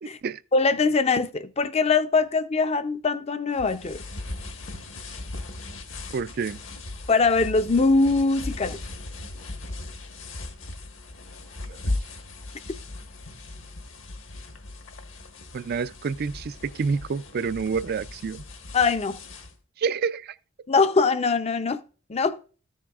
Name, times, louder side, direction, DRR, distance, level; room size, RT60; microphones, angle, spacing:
voice 1, 0.0-0.4 6.1-6.6 11.7-11.8 15.5-18.4 19.8-20.3, right 5 dB, 45° right, 0.3 m, -28 dB
voice 2, 0.5-4.0 7.1-8.8 18.7-19.2 20.7-21.8 22.1-22.4, left 4 dB, 30° left, 0.5 m, -22 dB
sound 1, 3.6-19.5, left 2 dB, 60° left, 1.2 m, -38 dB
14.0 x 7.2 x 2.4 m
head